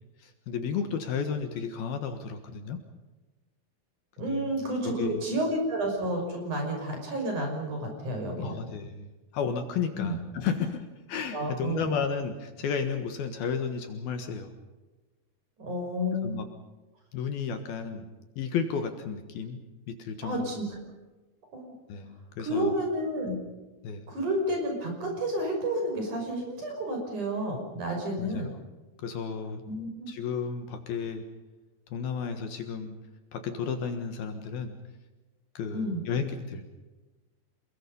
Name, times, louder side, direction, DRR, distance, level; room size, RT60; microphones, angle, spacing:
voice 1, 0.2-2.8 4.3-4.4 4.8-5.2 8.4-14.5 16.2-16.5 17.1-18.1 18.4-19.6 19.9-20.5 21.9-22.7 23.8-24.1 28.2-28.5 29.0-29.6 30.1-31.2 31.9-33.0 33.3-34.8 35.5-36.7, left 6 dB, 65° left, 7 dB, 3.1 m, -33 dB
voice 2, 4.2-8.6 9.9-10.2 11.3-11.9 15.6-16.3 20.2-20.8 21.5-21.7 22.4-23.3 24.1-28.5 29.7-30.1 35.7-36.0, right 1 dB, 45° right, 2 dB, 6.9 m, -30 dB
28.0 x 21.5 x 5.4 m, 1.1 s
omnidirectional pair, 5.0 m